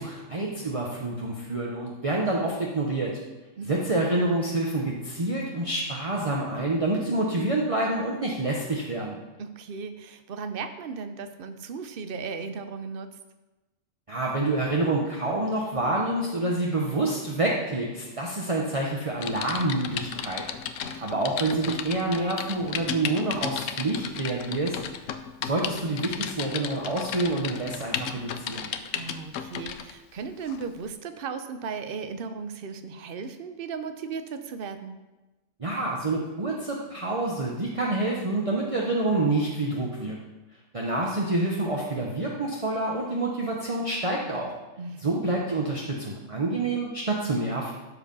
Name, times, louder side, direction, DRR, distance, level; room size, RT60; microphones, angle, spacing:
voice 1, 0.0-3.2 3.7-9.2 14.1-20.5 21.0-25.0 25.4-28.7 35.6-40.2 40.7-44.5 45.0-47.7, right 2 dB, 30° right, -2 dB, 1.0 m, -27 dB
voice 2, 3.6-4.0 9.4-13.2 20.8-21.2 29.0-35.0 44.8-45.1, right 5 dB, 50° right, 8 dB, 0.9 m, -36 dB
Typing, 19.2-29.9 30.5-30.7, left 8 dB, 85° left, 1.0 m, -34 dB
12.5 x 4.9 x 5.4 m, 1.1 s
omnidirectional pair, 1.3 m